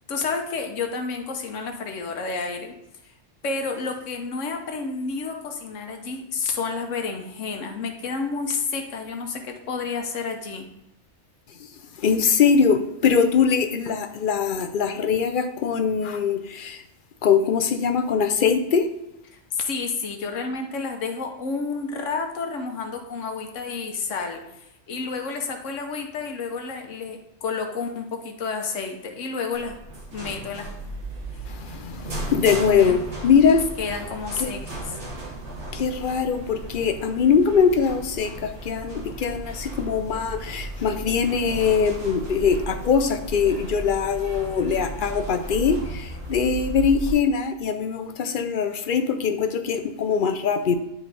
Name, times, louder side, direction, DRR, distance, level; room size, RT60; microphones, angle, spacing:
voice 1, 0.1-2.7 3.4-10.7 19.5-29.8 30.1-30.7 32.7-33.0 33.8-35.0, left 4 dB, 75° left, 4 dB, 1.3 m, -30 dB
voice 2, 12.0-16.8 17.2-18.9 31.5-33.6 34.4-34.5 35.7-50.7, left 6 dB, 55° left, 7 dB, 0.6 m, -22 dB
sound 1, 29.5-47.1, right 2 dB, 60° right, 1.9 m, -35 dB
10.0 x 3.6 x 3.4 m, 0.91 s
omnidirectional pair, 1.3 m